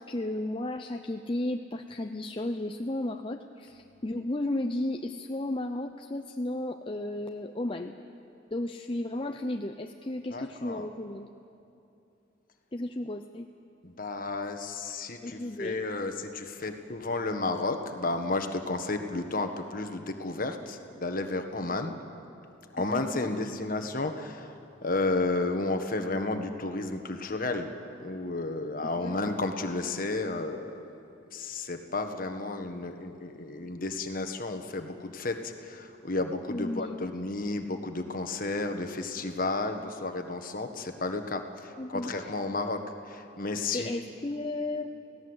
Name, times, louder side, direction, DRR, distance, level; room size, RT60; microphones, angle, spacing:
voice 1, 0.0-7.9 8.5-11.3 12.7-13.5 15.2-15.8 21.7-21.9 22.9-23.3 29.0-29.2 36.5-37.0 41.8-42.1 43.7-44.9, left 1 dB, 25° left, 5 dB, 0.6 m, -34 dB
voice 2, 10.3-10.9 13.8-21.9 22.7-24.5 24.8-27.7 28.0-30.9 31.3-43.9, left 2 dB, 45° left, 6 dB, 1.5 m, -32 dB
29.5 x 17.5 x 8.1 m, 2.8 s
head